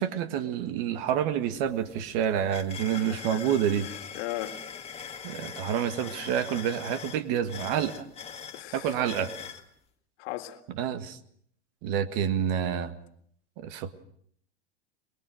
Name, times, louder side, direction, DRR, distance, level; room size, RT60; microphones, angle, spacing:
voice 1, 0.0-3.9 5.2-8.1 8.7-9.3 10.8-11.2 11.8-12.9 13.6-13.9, right 9 dB, 55° right, 1.8 m, -28 dB
sound 1, 1.1-1.2 1.5-9.6, left 7 dB, 20° left, 2.0 m, -42 dB
voice 2, 2.9-4.9 8.5-9.0 10.2-10.6, left 15 dB, 60° left, 2.1 m, -38 dB
23.0 x 22.0 x 6.4 m
hypercardioid pair, 120°, 34 cm